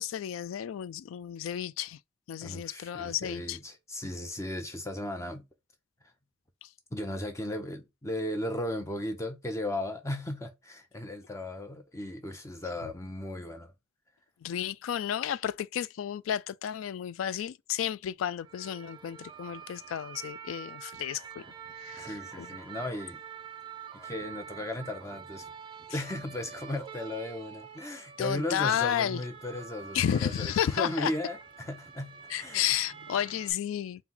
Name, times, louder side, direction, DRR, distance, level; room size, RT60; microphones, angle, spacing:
voice 1, 0.0-2.0 2.3-3.6 14.4-21.4 21.8-22.1 22.4-22.5 28.2-29.2 29.9-31.1 32.3-34.0, left 10 dB, 80° left, 0.3 m, -32 dB
voice 2, 2.4-5.4 6.9-13.7 22.0-23.2 24.0-25.5 25.9-32.8, left 1 dB, 15° left, 0.7 m, -36 dB
sound 1, 18.4-33.5, right 7 dB, 25° right, 0.5 m, -46 dB
4.3 x 2.2 x 3.8 m
head